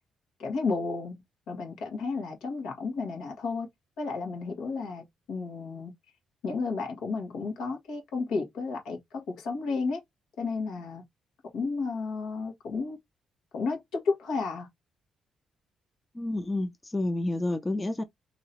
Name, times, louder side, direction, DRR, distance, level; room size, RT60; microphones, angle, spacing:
voice 1, 0.4-1.2 1.5-3.7 4.0-5.9 6.4-10.0 10.4-11.0 11.5-13.0 13.5-14.7, left 4 dB, 90° left, 1.5 m, -32 dB
voice 2, 16.1-18.0, left 2 dB, 20° left, 0.6 m, -29 dB
3.0 x 2.7 x 4.2 m
cardioid pair, 95°, 0 cm